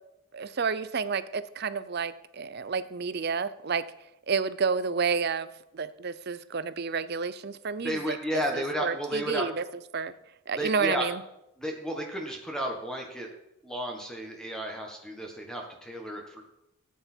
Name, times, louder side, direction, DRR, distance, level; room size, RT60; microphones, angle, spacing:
voice 1, 0.3-3.8 4.3-5.5 5.7-9.6 9.9-10.1 10.5-11.2, right 5 dB, 45° right, 14 dB, 0.5 m, -30 dB
voice 2, 7.8-9.5 10.5-11.1 11.6-13.3 13.6-16.4, equal, 5° left, 1 dB, 1.3 m, -33 dB
13.5 x 9.4 x 4.4 m, 0.87 s
head